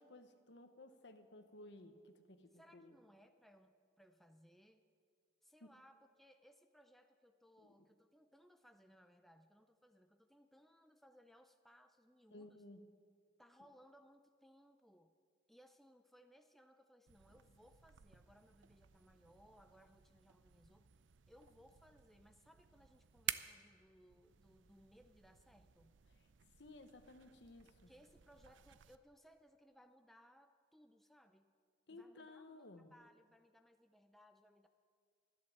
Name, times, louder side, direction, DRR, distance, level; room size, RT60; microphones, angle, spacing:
voice 1, 0.0-2.9 5.6-5.7 7.6-7.7 12.3-12.8 26.1-26.2 26.6-27.9 31.9-32.9, left 2 dB, 65° left, 9 dB, 1.1 m, -57 dB
voice 2, 2.5-4.8 5.4-12.6 13.4-15.1 15.5-20.9 21.3-26.0 27.9-31.6 31.9-34.7, equal, ahead, 6 dB, 0.5 m, -66 dB
sound 1, 17.1-29.0, right 11 dB, 85° right, 0.5 m, -52 dB
14.0 x 11.5 x 7.4 m, 2.1 s
head